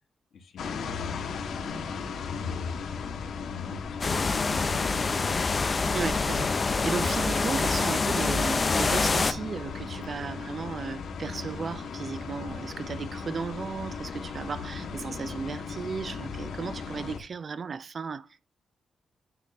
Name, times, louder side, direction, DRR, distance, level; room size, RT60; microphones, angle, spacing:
voice 1, 0.3-2.8 3.1-5.3, left 5 dB, 60° left, 1.4 m, -44 dB
sound 1, 0.6-17.2, left 5 dB, 80° left, 1.2 m, -36 dB
sound 2, 4.0-9.3, left 4 dB, 25° left, 0.5 m, -26 dB
voice 2, 5.9-18.5, right 5 dB, 40° right, 0.3 m, -35 dB
9.4 x 3.3 x 4.1 m
wide cardioid pair, 170°, 0 cm